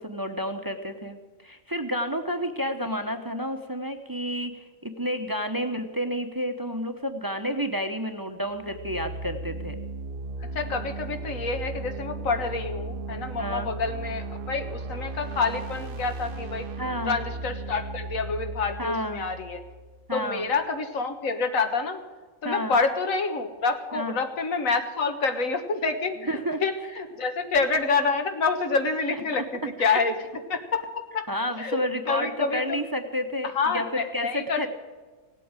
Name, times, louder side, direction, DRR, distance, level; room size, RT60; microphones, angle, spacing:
voice 1, 0.0-9.8 13.4-13.7 16.8-17.1 18.8-19.2 20.1-20.5 22.4-22.8 23.9-24.1 26.2-26.6 29.1-29.2 29.8-30.0 31.3-34.7, equal, 20° right, 6 dB, 0.8 m, -30 dB
sound 1, 8.5-20.3, right 2 dB, 50° right, 0.8 m, -36 dB
voice 2, 10.4-16.7 17.1-19.6 20.1-22.0 22.4-30.1 30.5-31.2 31.6-32.8 33.5-34.6, left 4 dB, 90° left, 6 dB, 1.9 m, -27 dB
17.5 x 8.4 x 9.0 m, 1.3 s
omnidirectional pair, 1.4 m